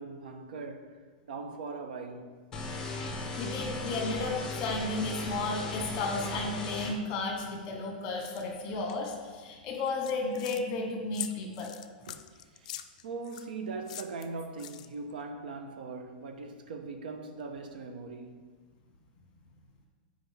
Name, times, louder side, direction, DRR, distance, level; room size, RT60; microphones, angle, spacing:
voice 1, 0.0-2.5 12.1-18.5, right 3 dB, 75° right, 0.7 m, -41 dB
sound 1, 2.5-6.9, left 2 dB, 15° left, 0.9 m, -37 dB
voice 2, 3.4-11.7, left 3 dB, 30° left, 1.3 m, -33 dB
sound 2, 8.3-8.4 8.9-9.2 9.8-10.6 11.1-13.5 13.9-15.1, left 12 dB, 50° left, 0.4 m, -43 dB
8.0 x 5.1 x 3.4 m
supercardioid pair, 175°, 5 cm